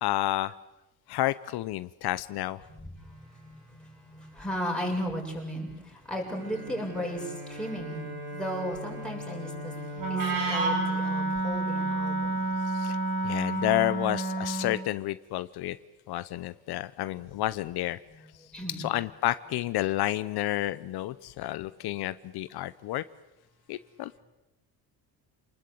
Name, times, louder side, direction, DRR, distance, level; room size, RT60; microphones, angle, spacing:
voice 1, 0.0-0.5 1.1-2.6 12.7-13.0 13.2-15.8 16.1-18.0 18.7-23.0 23.7-24.2, left 15 dB, 75° left, 15 dB, 0.8 m, -30 dB
voice 2, 2.7-12.4 18.4-18.9, equal, ahead, -2 dB, 7.2 m, -36 dB
Bowed string instrument, 6.2-11.6, equal, 75° right, 7.0 m, -41 dB
Wind instrument woodwind instrument, 9.9-14.8, right 2 dB, 55° right, 6.3 m, -29 dB
28.5 x 20.0 x 8.5 m, 1.0 s
cardioid pair, 135°, 39 cm